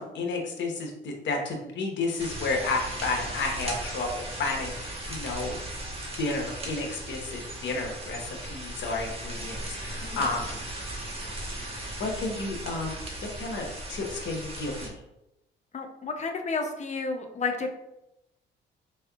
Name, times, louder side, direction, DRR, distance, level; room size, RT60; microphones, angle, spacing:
voice 1, 0.0-5.6 6.2-10.6 11.4-11.6 12.0-12.9 13.4-15.0, left 3 dB, 65° left, 2 dB, 1.0 m, -32 dB
sound 1, 2.2-14.9, right 1 dB, 30° right, 1.1 m, -37 dB
voice 2, 15.7-17.7, left 4 dB, 35° left, 5 dB, 0.6 m, -31 dB
4.4 x 3.4 x 2.3 m, 0.89 s
cardioid pair, 90°, 20 cm